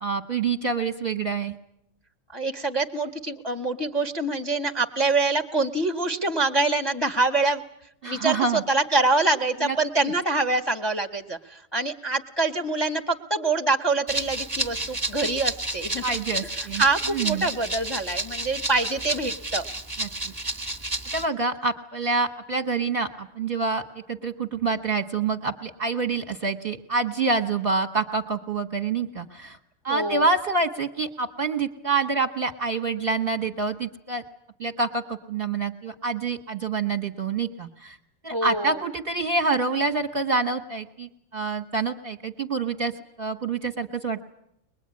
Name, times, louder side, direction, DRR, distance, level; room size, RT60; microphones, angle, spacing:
voice 1, 0.0-1.5 8.0-8.6 9.6-9.7 10.0-10.1 16.0-16.8 17.1-17.5 20.0-20.1 21.1-23.8 24.1-29.6 29.8-34.2 34.6-38.0 38.2-42.9 43.2-44.2, right 4 dB, 35° right, 8 dB, 1.1 m, -27 dB
voice 2, 2.3-7.6 8.0-16.2 16.5-19.7 29.9-30.2 38.3-38.8, right 3 dB, 20° left, 5 dB, 0.9 m, -25 dB
Rattle (instrument), 14.1-21.3, right 2 dB, 15° right, 1.3 m, -31 dB
23.0 x 21.0 x 9.6 m, 0.80 s
omnidirectional pair, 2.1 m